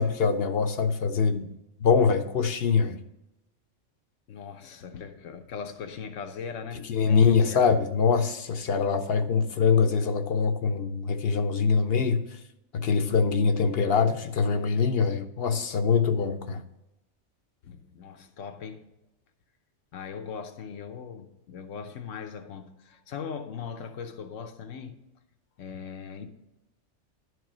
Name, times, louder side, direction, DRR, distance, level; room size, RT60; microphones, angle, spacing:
voice 1, 0.0-1.5 1.8-3.0 6.9-12.2 12.7-16.6, left 5 dB, 60° left, 0.8 m, -23 dB
voice 2, 4.3-7.7 17.6-18.8 19.9-25.0 25.6-26.3, left 6 dB, 90° left, 1.1 m, -39 dB
11.0 x 4.8 x 6.0 m
omnidirectional pair, 1.2 m